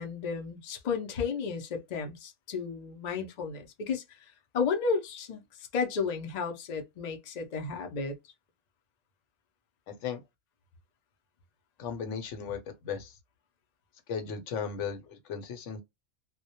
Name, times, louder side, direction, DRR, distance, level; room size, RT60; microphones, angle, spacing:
voice 1, 0.0-5.4 5.7-8.1, left 5 dB, 60° left, 0.4 m, -33 dB
voice 2, 9.9-10.2 11.8-13.2 14.1-15.8, left 6 dB, 75° left, 0.9 m, -36 dB
2.2 x 2.1 x 2.7 m
omnidirectional pair, 1.3 m